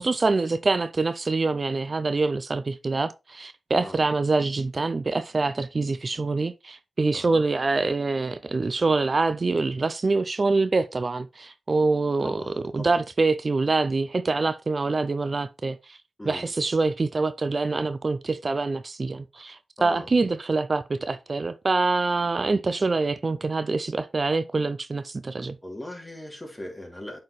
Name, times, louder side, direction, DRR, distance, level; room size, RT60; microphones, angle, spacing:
voice 1, 0.0-16.0 16.3-25.6, right 3 dB, 50° right, 0.5 m, -25 dB
voice 2, 12.2-13.0 16.2-16.5 19.8-20.1 25.6-27.2, left 1 dB, 20° left, 2.8 m, -39 dB
8.4 x 4.4 x 3.2 m
cardioid pair, 50°, 0 cm